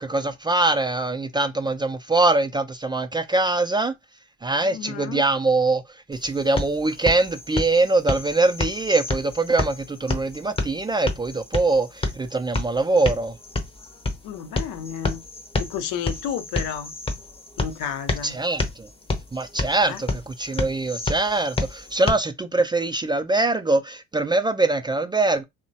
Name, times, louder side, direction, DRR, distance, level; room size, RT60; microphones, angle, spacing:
voice 1, 0.0-3.9 4.4-13.4 18.2-18.9 19.3-25.4, right 2 dB, 15° right, 0.3 m, -23 dB
voice 2, 4.6-5.2 14.2-15.3 15.6-16.9 17.6-18.4 19.9-20.0, left 8 dB, 70° left, 0.6 m, -32 dB
sound 1, 6.1-22.1, left 3 dB, 15° left, 0.7 m, -30 dB
2.8 x 2.1 x 2.6 m
hypercardioid pair, 65°, 32 cm